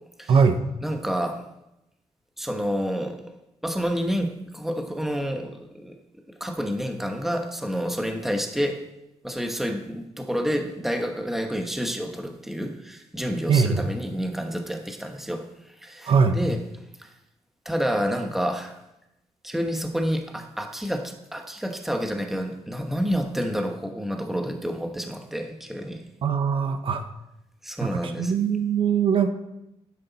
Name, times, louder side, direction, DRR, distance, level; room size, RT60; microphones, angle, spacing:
voice 1, 0.3-0.6 13.5-13.9 16.1-16.4 26.2-27.0 27.8-29.3, right 6 dB, 55° right, 8 dB, 0.9 m, -21 dB
voice 2, 0.8-1.4 2.4-3.3 3.6-5.9 6.3-8.8 9.2-15.4 15.8-16.6 17.0-17.1 17.6-18.8 19.4-26.0 27.6-28.3, equal, 5° right, 4 dB, 1.1 m, -29 dB
11.0 x 10.0 x 4.1 m, 0.87 s
wide cardioid pair, 155°, 11 cm